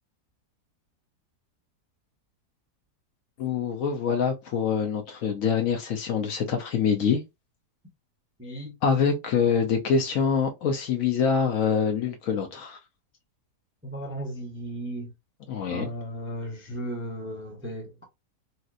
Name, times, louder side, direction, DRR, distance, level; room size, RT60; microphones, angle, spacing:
voice 1, 3.4-7.2 8.8-12.8 15.5-15.9, left 6 dB, 65° left, 0.9 m, -25 dB
voice 2, 8.4-8.8 13.8-15.1 15.7-18.1, right 1 dB, 15° right, 0.5 m, -35 dB
3.1 x 2.9 x 2.4 m
omnidirectional pair, 1.7 m